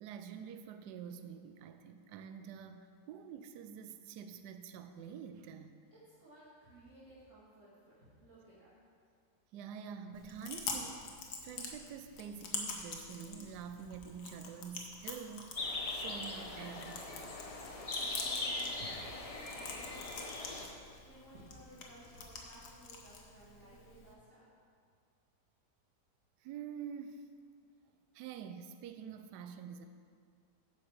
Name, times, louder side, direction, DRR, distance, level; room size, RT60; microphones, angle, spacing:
voice 1, 0.0-5.7 9.5-11.1 11.4-17.3 26.4-27.3 28.1-29.9, right 7 dB, 75° right, 8 dB, 1.1 m, -47 dB
voice 2, 5.9-8.7 18.0-19.3 19.5-24.5, right 1 dB, 45° right, -12 dB, 2.3 m, -57 dB
Chewing mastication, 10.1-24.1, left 4 dB, 70° left, 1.6 m, -46 dB
sound 1, 15.6-20.7, left 2 dB, 40° left, 0.5 m, -40 dB
9.5 x 5.0 x 6.3 m, 2.1 s
omnidirectional pair, 1.8 m